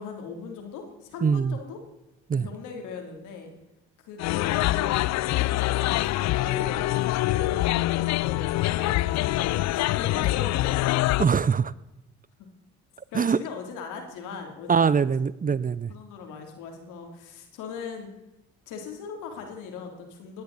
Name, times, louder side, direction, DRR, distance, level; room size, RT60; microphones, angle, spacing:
voice 1, 0.0-1.8 2.3-3.5 4.0-11.1 13.1-15.1 15.9-18.1 18.7-20.4, left 5 dB, 80° left, 3 dB, 3.2 m, -39 dB
voice 2, 1.2-1.6 2.3-2.5 11.2-11.7 13.1-13.4 14.7-15.9, right 6 dB, 25° right, 19 dB, 0.6 m, -22 dB
sound 1, 4.2-11.3, left 17 dB, 60° left, 0.4 m, -25 dB
18.0 x 10.5 x 4.1 m, 0.95 s
hypercardioid pair, 60°, 31 cm